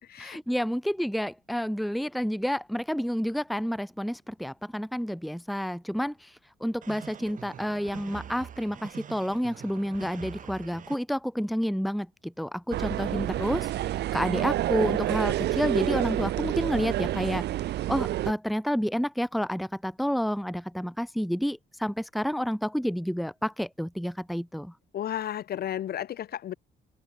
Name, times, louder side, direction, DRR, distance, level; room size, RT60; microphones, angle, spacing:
voice 1, 0.2-6.3 6.6-17.5 17.9-24.7, equal, ahead, 1.1 m, -30 dB
sound 1, 6.8-11.0, right 8 dB, 50° right, 5.9 m, -44 dB
sound 2, 12.7-18.3, right 14 dB, 80° right, 0.8 m, -28 dB
voice 2, 24.9-26.6, left 11 dB, 65° left, 2.7 m, -33 dB
cardioid pair, 140°, 17 cm